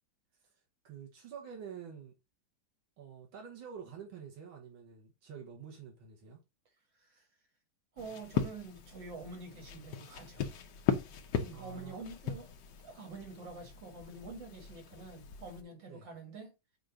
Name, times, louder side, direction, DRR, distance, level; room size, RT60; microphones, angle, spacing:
voice 1, 0.8-2.1 3.0-6.4 11.5-12.0 15.9-16.1, right 7 dB, 90° right, 2.1 m, -48 dB
sound 1, 8.0-15.6, left 8 dB, 70° left, 1.4 m, -38 dB
voice 2, 8.0-10.4 11.4-12.5 12.8-16.5, right 3 dB, 70° right, 2.6 m, -47 dB
7.7 x 2.7 x 4.9 m
omnidirectional pair, 2.1 m